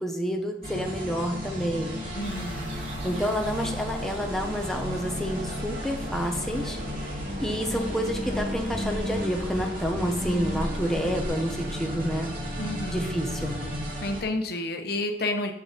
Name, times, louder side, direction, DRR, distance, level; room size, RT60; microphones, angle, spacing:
voice 1, 0.0-2.3 3.0-7.1 7.4-12.4 12.9-13.7, equal, ahead, 2 dB, 0.8 m, -29 dB
sound 1, 0.6-14.2, equal, 50° right, 2.4 m, -34 dB
sound 2, 2.0-11.3, equal, 85° right, 2.3 m, -40 dB
voice 2, 2.1-2.8 12.6-13.1 14.0-15.5, left 2 dB, 60° left, 6 dB, 1.0 m, -30 dB
sound 3, 2.2-13.8, equal, 20° right, 2.4 m, -41 dB
7.1 x 6.3 x 5.1 m, 0.76 s
head